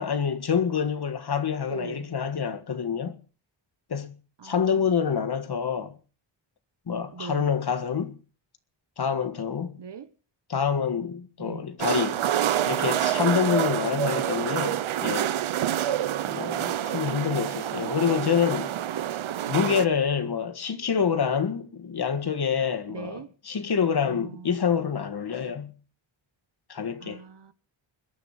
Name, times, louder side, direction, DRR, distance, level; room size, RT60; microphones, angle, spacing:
voice 1, 0.0-3.2 3.9-4.2 4.4-6.0 6.9-8.2 9.0-9.8 10.5-12.2 12.6-15.4 16.3-18.7 19.5-25.7 26.7-27.2, left 7 dB, 55° left, 1.8 m, -27 dB
voice 2, 1.7-2.1 4.4-5.0 7.1-7.5 9.8-10.1 11.4-11.6 22.9-23.3 24.0-24.8 27.0-27.5, right 6 dB, 60° right, 1.3 m, -42 dB
sound 1, 11.8-19.9, right 11 dB, 80° right, 0.9 m, -27 dB
21.5 x 10.5 x 6.0 m
wide cardioid pair, 125°, 47 cm